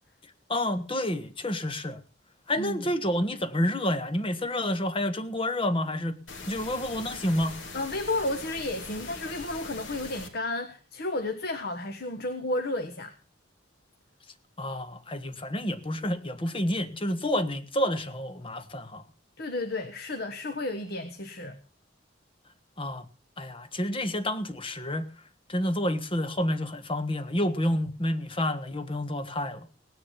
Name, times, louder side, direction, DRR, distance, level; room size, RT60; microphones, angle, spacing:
voice 1, 0.5-2.0 2.5-6.2 6.5-7.6 14.6-19.0 22.8-23.1 23.4-25.0 25.5-29.7, left 1 dB, 30° left, 1.5 m, -29 dB
sound 1, 6.3-10.3, left 3 dB, 75° left, 3.3 m, -41 dB
voice 2, 7.7-13.1 19.4-21.6, left 2 dB, 55° left, 1.4 m, -32 dB
18.0 x 10.5 x 5.7 m
head